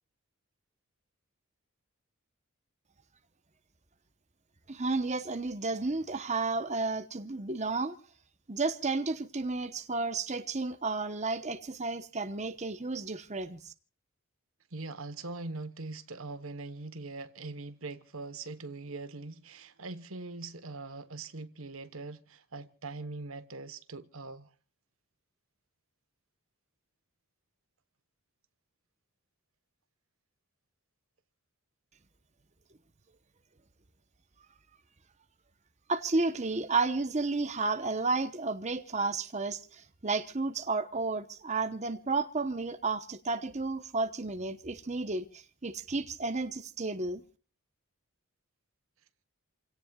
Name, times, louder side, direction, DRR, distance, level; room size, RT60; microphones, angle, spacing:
voice 1, 4.7-8.0 8.5-13.7 35.9-47.2, right 3 dB, 30° right, 1.0 m, -32 dB
voice 2, 14.7-24.5, right 3 dB, 65° right, 1.2 m, -42 dB
29.0 x 17.5 x 2.4 m
head